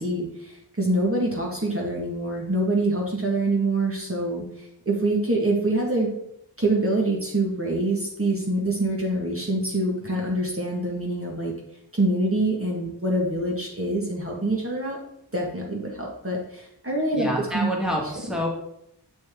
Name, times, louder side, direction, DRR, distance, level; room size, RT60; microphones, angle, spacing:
voice 1, 0.0-6.1 6.6-11.5 11.9-15.0 15.3-17.3 17.5-17.7, right 2 dB, 30° right, -2 dB, 1.7 m, -25 dB
voice 2, 17.1-18.5, equal, ahead, -1 dB, 1.9 m, -27 dB
6.8 x 5.9 x 3.7 m, 0.78 s
wide cardioid pair, 50°, 41 cm